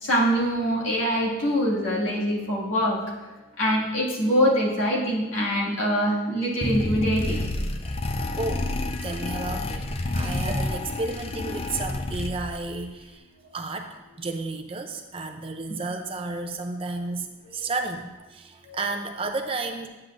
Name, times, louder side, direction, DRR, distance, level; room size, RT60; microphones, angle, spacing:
voice 1, 0.0-3.0 3.6-7.4 18.7-18.8, equal, 80° left, -5 dB, 2.1 m, -24 dB
sound 1, 6.6-12.7, left 2 dB, 30° left, 0.4 m, -29 dB
voice 2, 8.4-8.7 9.0-9.8 10.1-13.3 13.5-19.9, right 3 dB, 30° right, 5 dB, 0.5 m, -32 dB
9.6 x 8.0 x 2.5 m, 1.2 s
head